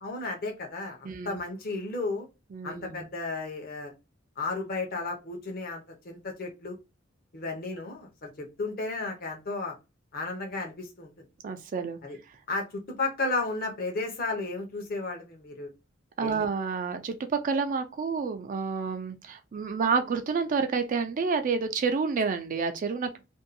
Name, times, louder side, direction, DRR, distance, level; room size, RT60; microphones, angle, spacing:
voice 1, 0.0-2.3 2.6-3.9 4.4-6.8 7.3-9.7 10.1-11.1 12.0-12.2 12.5-15.7 16.2-16.5, left 3 dB, 50° left, 0.7 m, -33 dB
voice 2, 1.0-1.4 2.5-3.0 11.4-12.0 16.2-23.3, right 5 dB, 45° right, 0.4 m, -29 dB
2.6 x 2.2 x 2.5 m
head